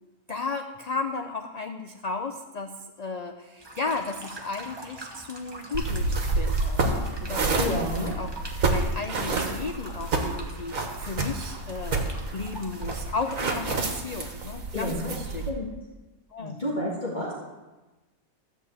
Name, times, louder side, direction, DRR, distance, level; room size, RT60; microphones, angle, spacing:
voice 1, 0.3-8.3 8.7-12.0 12.3-15.4 16.3-16.6, left 3 dB, 60° left, 6 dB, 0.4 m, -34 dB
sound 1, 3.6-13.5, right 1 dB, 20° right, 1.2 m, -44 dB
sound 2, 5.7-15.5, right 3 dB, 70° right, 1.8 m, -29 dB
voice 2, 7.6-8.1 14.7-15.1 15.5-15.7 16.4-17.3, left 1 dB, 30° left, -6 dB, 1.8 m, -30 dB
13.5 x 5.1 x 7.9 m, 1.1 s
omnidirectional pair, 1.5 m